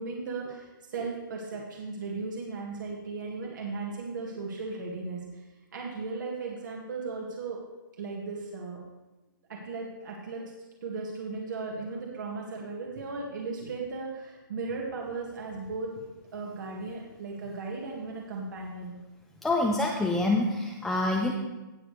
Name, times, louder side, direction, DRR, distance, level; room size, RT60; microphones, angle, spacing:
voice 1, 0.0-5.4 5.7-7.6 8.0-8.8 9.5-10.4 10.8-15.9 16.3-18.9, right 4 dB, 60° right, -2 dB, 2.0 m, -36 dB
voice 2, 19.4-21.3, left 2 dB, 5° left, -1 dB, 0.5 m, -26 dB
18.0 x 6.7 x 3.3 m, 1.1 s
hypercardioid pair, 165°, 11 cm